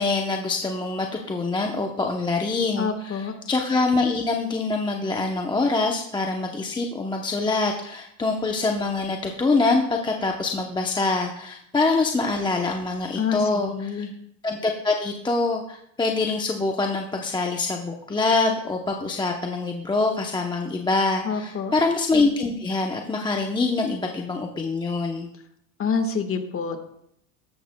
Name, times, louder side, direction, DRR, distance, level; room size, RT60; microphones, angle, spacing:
voice 1, 0.0-14.1 14.4-25.3, left 3 dB, 10° left, 2 dB, 0.7 m, -25 dB
voice 2, 2.8-3.3 13.2-14.1 21.2-21.7 25.8-26.8, left 5 dB, 30° left, 7 dB, 1.4 m, -27 dB
14.0 x 12.0 x 2.2 m, 0.73 s
supercardioid pair, 130°, 45 cm